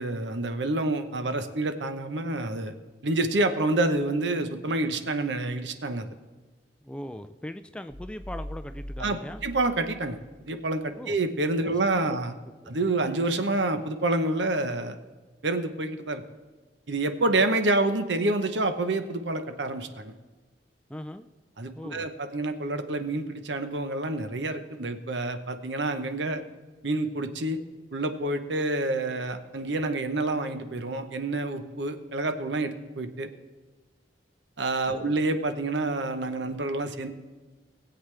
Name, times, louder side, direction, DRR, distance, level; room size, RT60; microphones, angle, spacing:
voice 1, 0.0-2.7 3.0-6.1 9.0-9.2 9.4-10.2 10.5-12.3 12.7-15.0 15.4-16.2 16.9-20.1 21.6-26.4 26.8-27.6 27.9-33.3 34.6-37.1, right 2 dB, 80° right, 8 dB, 0.9 m, -28 dB
voice 2, 6.8-9.4 11.0-11.2 11.6-11.8 12.6-12.7 20.9-21.3 21.8-22.1 34.9-35.2, left 1 dB, 5° left, 10 dB, 0.4 m, -39 dB
sound 1, 7.9-10.5, equal, 10° right, 1.5 m, -41 dB
20.0 x 8.0 x 3.3 m, 1.3 s
head